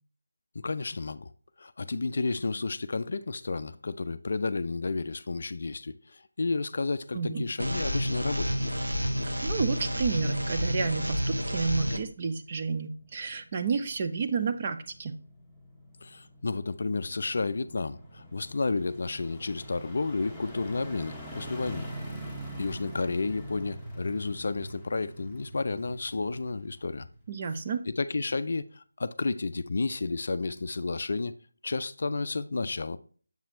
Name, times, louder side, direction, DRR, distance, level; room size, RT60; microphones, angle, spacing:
voice 1, 0.5-1.3 1.6-8.6 16.0-21.9 22.6-27.1 27.9-31.3 31.6-33.0, left 3 dB, 50° left, 0.4 m, -31 dB
voice 2, 7.1-7.5 9.4-15.2 27.3-27.8, right 5 dB, 30° right, 0.6 m, -30 dB
sound 1, 7.6-12.0, equal, 85° right, 0.9 m, -29 dB
sound 2, 12.0-27.6 28.0-28.1, right 1 dB, 5° right, 1.3 m, -45 dB
7.2 x 5.8 x 2.6 m
figure-of-eight pair, 160°, 0 cm